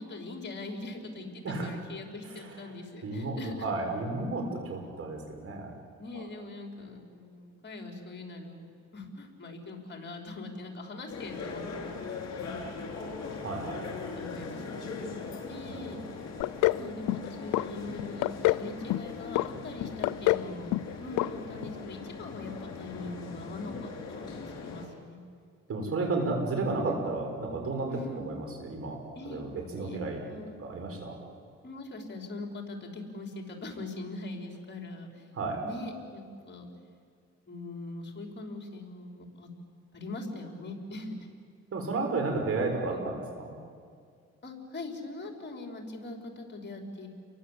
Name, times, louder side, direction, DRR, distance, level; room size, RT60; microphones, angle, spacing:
voice 1, 0.0-3.7 5.9-8.7 8.9-12.6 14.2-15.0 15.5-16.0 16.8-20.7 21.0-25.2 26.8-27.0 27.9-28.2 29.2-30.6 31.6-35.3 35.6-36.7 37.5-39.5 39.9-41.3 42.9-43.1 44.4-47.1, left 2 dB, 35° left, 2 dB, 5.3 m, -42 dB
voice 2, 1.4-1.7 3.0-5.7 6.1-6.2 13.4-14.0 15.7-16.0 25.7-29.0 29.2-30.2 30.6-31.2 35.3-35.6 41.7-43.5, right 3 dB, 50° right, 3 dB, 6.4 m, -32 dB
sound 1, 11.1-24.9, left 4 dB, 60° left, 6.0 m, -40 dB
sound 2, 16.4-16.8 17.1-17.7 18.0-18.6 18.9-19.5 19.8-20.5 20.7-20.9 21.2-21.3 21.6-21.7, left 18 dB, 90° left, 0.6 m, -26 dB
29.5 x 23.0 x 8.7 m, 2.2 s
cardioid pair, 90°, 30 cm